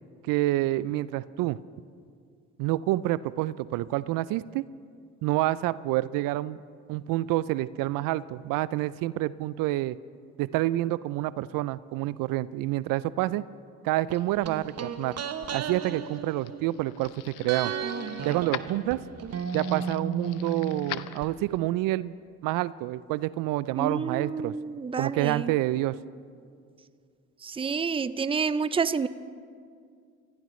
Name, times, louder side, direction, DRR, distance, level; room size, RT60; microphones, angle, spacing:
voice 1, 0.2-1.6 2.6-4.6 5.2-6.6 6.9-10.0 10.4-13.4 13.8-15.2 15.5-17.7 18.2-19.0 19.5-22.1 22.4-24.5 25.0-26.0, right 16 dB, 75° right, 18 dB, 0.5 m, -28 dB
sound 1, 14.1-17.1 17.5-21.3 21.5-21.6, right 6 dB, 50° right, 1.1 m, -35 dB
sound 2, 15.7-21.7, left 14 dB, 70° left, 0.7 m, -43 dB
voice 2, 23.8-25.5 27.4-29.1, right 5 dB, 15° right, 15 dB, 0.5 m, -29 dB
26.0 x 16.5 x 3.2 m, 2.2 s
supercardioid pair, 65°, 34 cm